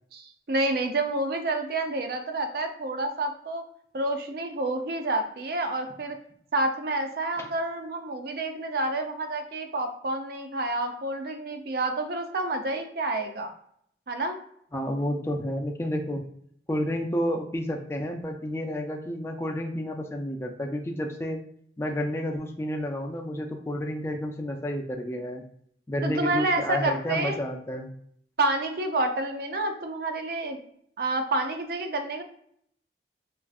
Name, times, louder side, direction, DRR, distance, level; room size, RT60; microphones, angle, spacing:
voice 1, 0.1-3.6 3.9-6.2 6.5-13.5 14.1-14.4 26.0-27.4 28.4-30.6 31.0-32.2, right 2 dB, 60° right, 6 dB, 0.5 m, -29 dB
voice 2, 14.7-16.2 16.7-21.4 21.8-25.4 25.9-27.9, equal, 15° left, 3 dB, 0.3 m, -30 dB
4.6 x 2.4 x 2.3 m, 0.67 s
head